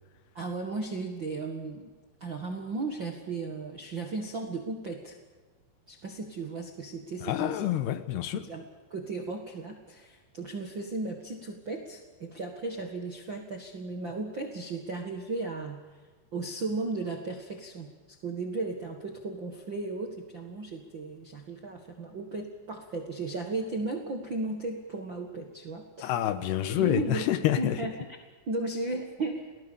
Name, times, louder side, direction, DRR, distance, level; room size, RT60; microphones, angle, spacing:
voice 1, 0.3-1.9 2.2-5.2 5.9-7.8 8.3-8.6 8.9-16.0 16.3-17.9 18.2-26.1 26.8-27.2 27.6-28.1 28.5-29.5, right 3 dB, 50° right, 3 dB, 1.4 m, -35 dB
voice 2, 7.2-8.4 26.0-27.8, left 12 dB, 75° left, 11 dB, 3.0 m, -27 dB
29.5 x 19.5 x 7.0 m, 1.3 s
omnidirectional pair, 5.1 m